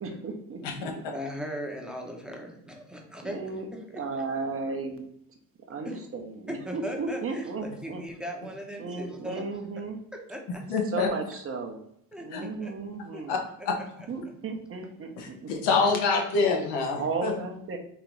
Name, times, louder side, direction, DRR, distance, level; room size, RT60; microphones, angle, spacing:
voice 1, 0.0-0.9 3.2-3.7 3.9-5.0 5.7-8.0 8.8-10.0 10.9-11.8 12.2-13.4 14.1-15.5 17.0-17.8, right 4 dB, 35° right, 4 dB, 0.8 m, -34 dB
voice 2, 0.6-4.0 5.8-6.1 6.5-9.5 10.1-10.6 12.1-12.7 13.1-13.2 13.6-13.7 15.8-15.9, equal, ahead, 0 dB, 0.9 m, -39 dB
voice 3, 10.7-11.1 12.3-12.4 13.3-13.4 13.7-13.8 15.2-17.3, left 4 dB, 85° left, 2 dB, 1.2 m, -26 dB
4.0 x 2.7 x 4.6 m, 0.72 s
cardioid pair, 110°, 39 cm